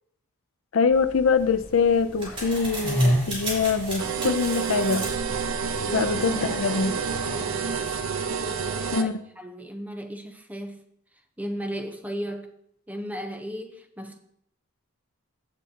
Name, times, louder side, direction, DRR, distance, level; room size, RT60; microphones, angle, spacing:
voice 1, 0.7-5.1 5.9-6.9 8.9-9.2, left 5 dB, 70° left, 0.5 m, -24 dB
sound 1, 0.9-8.9, equal, 10° left, 4.3 m, -33 dB
sound 2, 1.4-6.7, right 2 dB, 25° right, 4.0 m, -38 dB
sound 3, 4.0-9.0, right 6 dB, 70° right, 0.7 m, -29 dB
voice 2, 5.8-7.8 8.3-9.1 9.4-10.8 11.4-12.5 12.9-14.2, equal, 5° right, 0.8 m, -36 dB
15.5 x 7.1 x 2.8 m
head